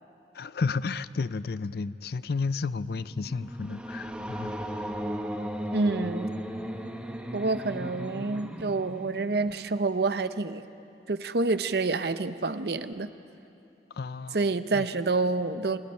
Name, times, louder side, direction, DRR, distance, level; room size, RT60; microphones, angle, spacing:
voice 1, 0.3-4.5 4.8-4.9 13.9-14.9, left 4 dB, 55° left, 16 dB, 0.4 m, -32 dB
sound 1, 2.6-9.9, equal, 5° right, 1.2 m, -36 dB
voice 2, 5.7-6.3 7.3-10.7 11.1-13.1 14.3-15.8, right 3 dB, 60° right, 12 dB, 0.7 m, -28 dB
27.5 x 27.5 x 4.5 m, 2.8 s
head